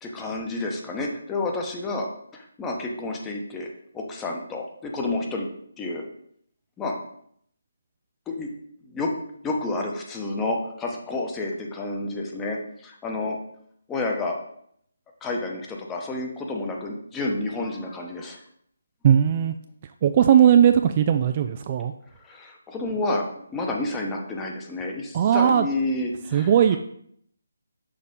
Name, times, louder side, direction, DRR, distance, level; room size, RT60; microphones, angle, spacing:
voice 1, 0.0-2.1 2.3-3.7 3.9-5.5 5.8-6.0 6.8-7.0 8.3-8.5 8.9-9.1 9.4-13.4 13.9-14.4 15.2-18.4 22.2-26.8, left 2 dB, 10° left, 1 dB, 0.9 m, -30 dB
voice 2, 19.0-19.5 20.0-21.9 25.1-25.7 26.3-26.8, right 9 dB, 30° right, 8 dB, 0.3 m, -18 dB
6.4 x 5.4 x 3.7 m, 0.68 s
figure-of-eight pair, 160°, 0 cm